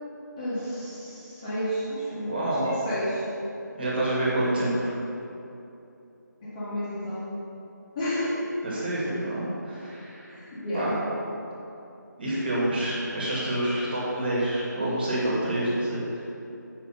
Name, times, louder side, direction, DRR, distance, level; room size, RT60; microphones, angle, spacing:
voice 1, 0.4-3.3 6.4-7.3 7.9-8.4 10.3-10.9, equal, 15° left, -11 dB, 1.4 m, -31 dB
voice 2, 2.2-2.8 3.8-5.0 8.6-10.4 10.7-11.0 12.2-16.2, right 1 dB, 30° right, -6 dB, 2.0 m, -27 dB
7.5 x 5.8 x 5.6 m, 2.8 s
figure-of-eight pair, 170°, 10 cm